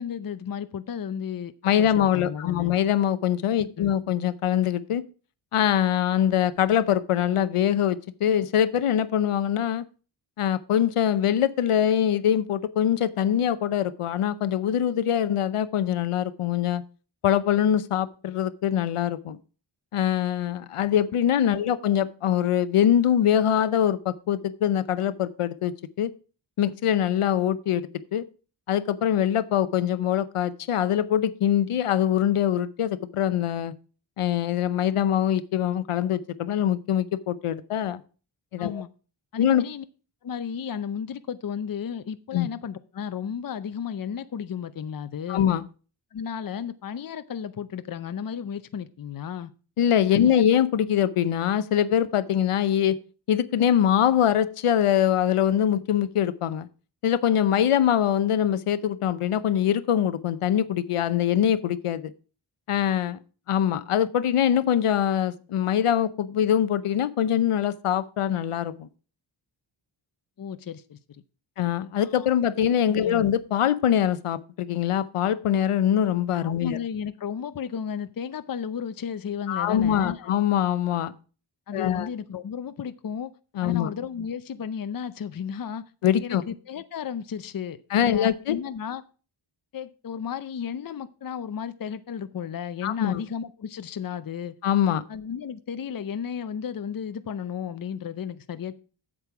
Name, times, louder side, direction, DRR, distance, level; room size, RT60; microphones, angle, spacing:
voice 1, 0.0-1.5 1.8-2.8 3.6-3.9 21.5-21.6 38.6-38.9 39.3-39.8 40.2-45.5 46.1-49.5 50.1-50.4 70.4-71.2 72.0-72.3 72.9-73.2 76.4-80.3 81.7-83.3 83.6-85.8 86.2-89.0 89.7-94.5 95.1-98.8, left 7 dB, 45° left, 12 dB, 0.6 m, -34 dB
voice 2, 1.6-5.0 5.5-9.8 10.4-16.8 17.2-19.4 19.9-26.1 26.6-28.2 28.7-33.7 34.2-38.0 38.5-38.8 39.4-39.6 42.3-42.5 45.3-45.6 49.8-53.0 53.3-56.7 57.0-62.1 62.7-63.2 63.5-68.9 71.6-76.8 79.5-81.1 81.7-82.1 83.6-83.9 86.0-86.4 87.9-88.6 92.8-93.2 94.6-95.0, left 10 dB, 85° left, 14 dB, 0.7 m, -23 dB
8.2 x 7.6 x 4.8 m, 0.36 s
wide cardioid pair, 125°, 50 cm